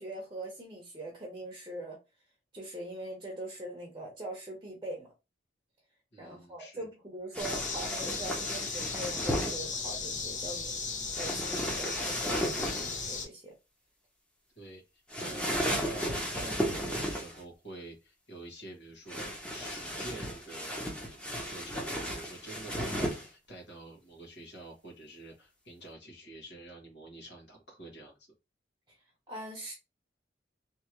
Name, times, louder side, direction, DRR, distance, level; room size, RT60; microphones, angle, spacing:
voice 1, 0.0-2.0 2.5-5.1 6.2-10.7 11.2-13.5 15.2-15.5 29.3-29.7, right 1 dB, 20° right, 0.9 m, -42 dB
voice 2, 6.1-6.9 14.6-28.3, right 2 dB, 70° left, 1.8 m, -48 dB
sound 1, 7.3-9.6 11.1-13.0 15.1-17.4 19.1-23.3, equal, 5° left, 0.9 m, -34 dB
sound 2, 7.4-13.3, left 4 dB, 40° left, 0.8 m, -36 dB
3.4 x 2.9 x 3.0 m
head